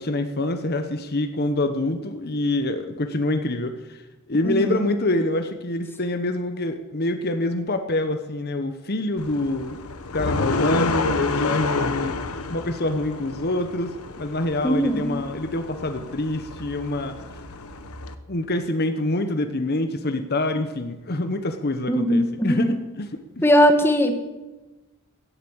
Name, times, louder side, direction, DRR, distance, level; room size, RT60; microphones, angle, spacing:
voice 1, 0.0-4.0 4.3-9.8 10.1-12.2 12.5-17.1 18.3-23.4, left 2 dB, 45° left, 8 dB, 1.0 m, -26 dB
voice 2, 4.4-4.8 14.6-15.2 21.9-22.7 23.4-24.2, equal, 10° left, 5 dB, 1.4 m, -19 dB
sound 1, 9.2-18.1, left 3 dB, 80° left, 1.1 m, -29 dB
16.0 x 8.4 x 8.7 m, 1.1 s
head